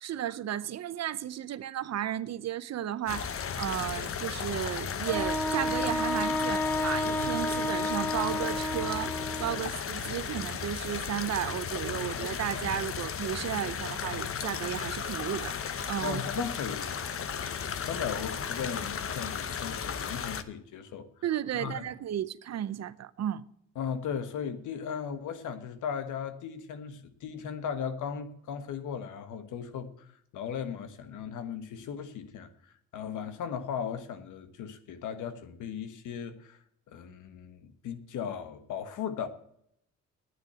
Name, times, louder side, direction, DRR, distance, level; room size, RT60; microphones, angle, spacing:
voice 1, 0.0-9.1 9.4-15.5 15.9-16.2 21.2-23.4, right 11 dB, 60° right, 0.8 m, -34 dB
sound 1, 3.1-20.4, left 7 dB, 45° left, 1.0 m, -35 dB
Wind instrument woodwind instrument, 5.1-9.7, left 1 dB, 5° left, 0.9 m, -31 dB
voice 2, 16.0-21.1 21.5-21.8 23.7-30.1 30.3-36.6 36.9-39.3, left 7 dB, 80° left, 1.4 m, -37 dB
9.7 x 8.7 x 7.9 m
cardioid pair, 90°, 30 cm